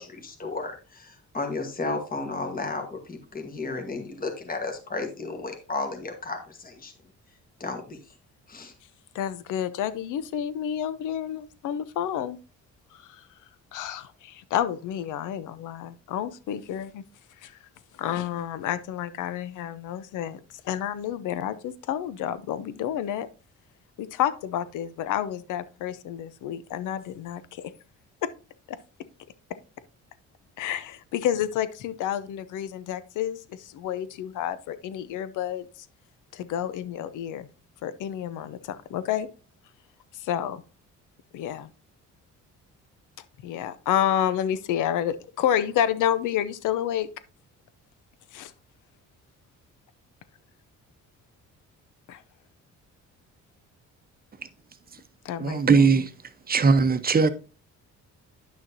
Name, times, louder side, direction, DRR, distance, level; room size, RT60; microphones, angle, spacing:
voice 1, 0.0-6.9 7.6-8.0 8.5-8.7, left 3 dB, 30° left, 1.4 m, -33 dB
voice 2, 9.1-12.4 12.9-13.3 13.7-17.0 17.4-17.6 18.0-23.3 24.0-27.7 28.2-28.3 28.7-28.8 29.5-29.6 30.6-35.9 36.3-37.5 37.8-39.3 40.1-40.6 41.3-41.7 43.4-47.1 48.3-48.5 52.1-52.2 55.2-55.9, left 10 dB, 85° left, 0.7 m, -30 dB
voice 3, 55.4-56.1 56.5-57.3, right 4 dB, 30° right, 0.8 m, -19 dB
9.8 x 6.3 x 2.7 m
cardioid pair, 90°, 30 cm